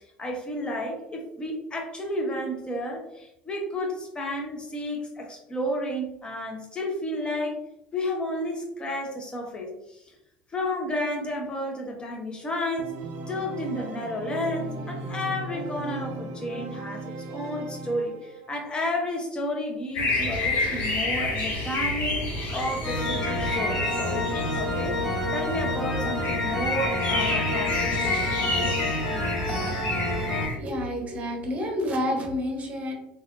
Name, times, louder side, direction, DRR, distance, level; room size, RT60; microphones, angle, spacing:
voice 1, 0.2-7.6 7.9-10.1 10.5-13.0 13.3-22.2 22.5-28.7 29.5-29.7, left 1 dB, 20° left, 1 dB, 0.9 m, -32 dB
Organ, 12.8-18.5, right 2 dB, 55° right, 0.5 m, -36 dB
sound 1, 19.9-30.6, left 2 dB, 50° left, 1.1 m, -29 dB
sound 2, 22.8-30.5, left 1 dB, ahead, 1.4 m, -29 dB
voice 2, 30.4-32.9, left 1 dB, 30° right, 2 dB, 1.0 m, -29 dB
3.3 x 2.6 x 2.5 m, 0.85 s
hypercardioid pair, 70°, 4 cm